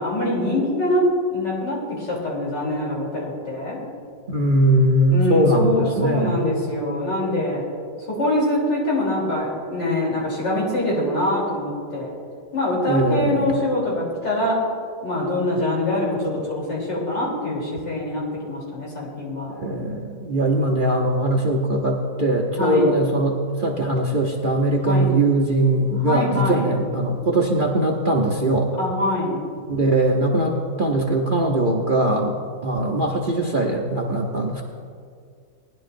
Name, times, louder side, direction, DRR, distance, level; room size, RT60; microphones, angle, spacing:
voice 1, 0.0-3.8 5.1-7.6 8.1-12.1 12.5-14.7 15.0-19.5 22.5-22.9 24.8-25.2 25.9-26.7 28.7-29.4, left 1 dB, 90° left, -5 dB, 4.0 m, -24 dB
voice 2, 4.3-6.4 12.9-13.6 19.5-28.7 29.7-32.4 32.6-34.6, right 1 dB, 40° right, 1 dB, 0.7 m, -21 dB
19.0 x 11.0 x 2.6 m, 2.2 s
omnidirectional pair, 1.9 m